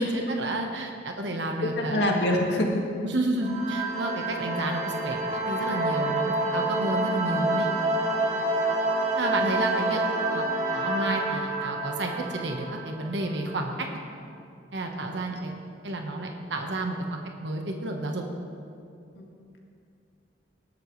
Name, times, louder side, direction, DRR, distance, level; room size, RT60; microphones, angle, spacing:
voice 1, 0.0-2.1 3.0-7.7 8.3-8.4 9.2-10.0 10.3-13.7 14.7-15.5 15.8-18.2, right 1 dB, 85° right, 2 dB, 1.3 m, -31 dB
voice 2, 1.8-2.8 19.2-19.3, left 1 dB, 75° left, -1 dB, 2.1 m, -24 dB
sound 1, 3.4-13.8, right 2 dB, 40° right, 1.5 m, -28 dB
19.5 x 12.5 x 3.3 m, 2.5 s
head